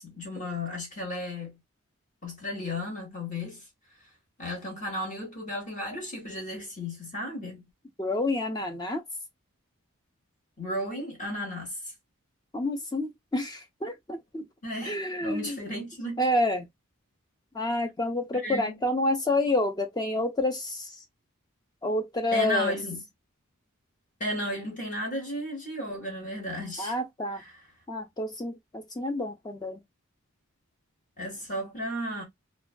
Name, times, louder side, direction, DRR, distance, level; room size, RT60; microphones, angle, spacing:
voice 1, 0.0-1.6 2.2-3.7 4.4-7.6 10.6-11.9 14.6-16.2 18.3-18.8 22.3-23.0 24.2-27.0 27.3-27.7 31.2-32.2, left 1 dB, 35° left, 1.0 m, -34 dB
voice 2, 8.0-9.0 12.5-14.4 14.9-15.6 16.2-16.7 17.5-20.9 21.8-22.7 26.8-27.4 27.9-29.8, left 1 dB, 20° left, 0.4 m, -28 dB
2.4 x 2.2 x 2.3 m
head